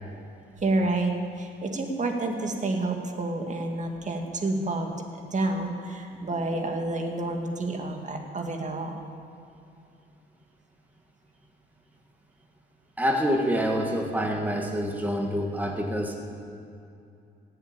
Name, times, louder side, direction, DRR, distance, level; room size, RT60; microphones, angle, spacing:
voice 1, 0.6-4.9 5.3-9.0, right 2 dB, 35° right, 3 dB, 2.2 m, -29 dB
voice 2, 13.0-16.2, equal, 10° right, 1 dB, 1.8 m, -27 dB
18.0 x 8.1 x 8.8 m, 2.6 s
cardioid pair, 90°, 20 cm